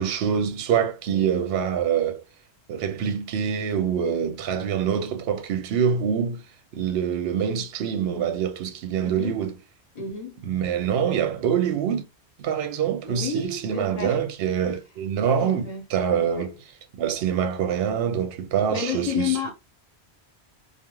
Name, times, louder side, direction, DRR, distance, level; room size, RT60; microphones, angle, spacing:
voice 1, 0.0-2.2 2.7-6.4 6.7-9.5 10.4-12.0 12.4-16.6 16.9-19.5, right 8 dB, 70° right, 0.8 m, -25 dB
voice 2, 9.0-9.4 9.9-10.4 13.0-14.2 14.7-14.8 15.4-15.9 16.3-16.5 18.7-19.5, left 6 dB, 40° left, 0.8 m, -31 dB
2.4 x 2.3 x 3.0 m
omnidirectional pair, 1.1 m